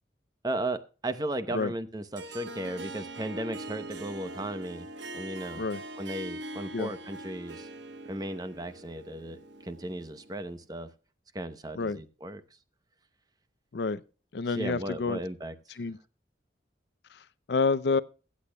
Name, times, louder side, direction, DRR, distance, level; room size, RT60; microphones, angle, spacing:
voice 1, 0.4-4.9 5.1-5.6 6.0-7.7 8.0-10.9 11.3-12.4 14.5-15.5, right 1 dB, 20° right, 0.7 m, -35 dB
Harp, 2.1-10.6, right 2 dB, 80° right, 1.1 m, -42 dB
voice 2, 14.3-15.2 15.8-16.0 17.1-18.0, left 4 dB, 65° left, 0.5 m, -29 dB
23.0 x 8.4 x 2.2 m
head